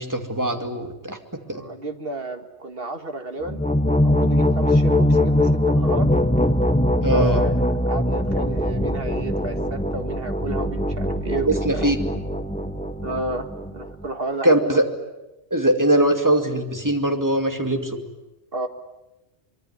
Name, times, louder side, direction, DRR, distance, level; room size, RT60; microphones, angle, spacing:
voice 1, 0.0-1.6 7.0-7.5 11.4-12.0 14.4-14.8 15.5-18.0, right 1 dB, 15° right, 4 dB, 2.5 m, -21 dB
voice 2, 1.5-3.6 4.0-6.1 7.1-11.8 13.0-14.8 18.5-18.7, right 2 dB, 55° right, 6 dB, 2.1 m, -32 dB
sound 1, 3.4-14.1, left 1 dB, 5° left, 0.9 m, -22 dB
24.5 x 23.0 x 9.6 m, 1.0 s
omnidirectional pair, 1.2 m